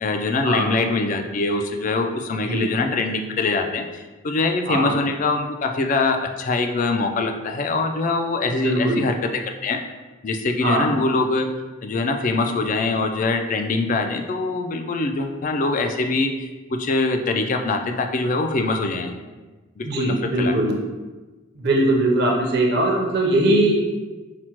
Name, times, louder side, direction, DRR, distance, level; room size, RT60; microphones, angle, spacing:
voice 1, 0.0-9.8 10.2-11.5 11.8-19.1 19.8-20.5, left 3 dB, 40° left, 5 dB, 0.3 m, -23 dB
voice 2, 8.6-9.0 10.6-10.9 19.8-20.7 21.6-23.7, right 1 dB, 55° right, -1 dB, 0.6 m, -20 dB
5.8 x 2.1 x 2.9 m, 1.2 s
head